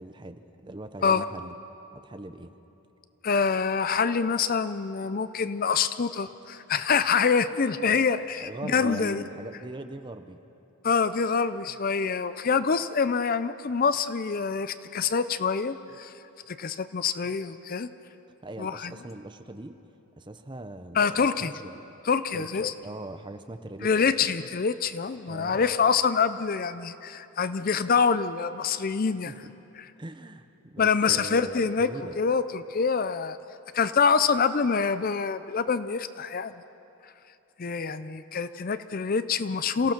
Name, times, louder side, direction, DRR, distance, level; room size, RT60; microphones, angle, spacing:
voice 1, 0.0-1.5 1.9-2.6 7.8-8.0 8.4-10.4 18.4-19.8 20.2-21.8 22.3-24.0 25.3-25.7 29.3-29.5 30.0-32.2, right 2 dB, 20° right, 9 dB, 0.7 m, -41 dB
voice 2, 3.2-9.2 10.8-16.1 16.5-17.9 18.6-18.9 20.9-21.5 22.0-22.7 23.8-29.3 29.8-29.9 30.8-33.4 33.7-36.5 37.0-37.1 37.6-39.9, left 5 dB, 40° left, 13 dB, 0.5 m, -26 dB
27.0 x 16.0 x 6.0 m, 3.0 s
head